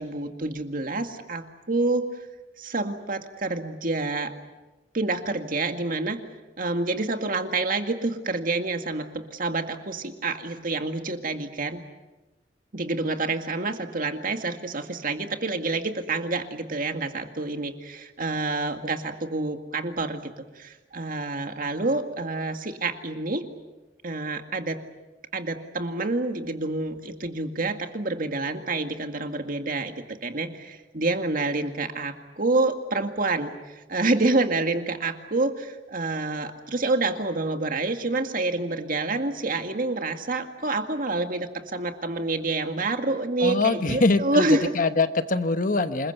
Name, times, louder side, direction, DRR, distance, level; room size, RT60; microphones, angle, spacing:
voice 1, 0.0-2.1 2.6-4.3 4.9-6.2 6.6-11.8 12.7-23.4 24.0-24.8 25.3-44.7, right 2 dB, 50° right, 6 dB, 2.0 m, -28 dB
voice 2, 43.4-46.1, left 3 dB, 50° left, 10 dB, 1.2 m, -23 dB
27.5 x 21.5 x 8.0 m, 1.1 s
head